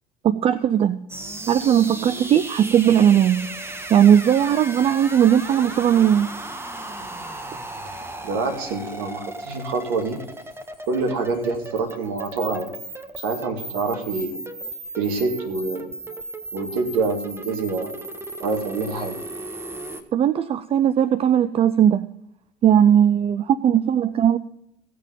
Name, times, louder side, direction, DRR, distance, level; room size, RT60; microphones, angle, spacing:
voice 1, 0.2-1.0 1.5-6.3 20.1-22.1 22.6-24.4, right 9 dB, 30° right, 0.5 m, -18 dB
sound 1, 1.1-20.0, right 2 dB, 10° right, 1.4 m, -36 dB
voice 2, 8.2-10.2 10.9-12.7 13.2-14.4 15.0-15.9 16.5-18.0 18.4-19.2, right 3 dB, 60° right, 2.4 m, -26 dB
16.0 x 6.9 x 5.4 m
figure-of-eight pair, 65°, 21 cm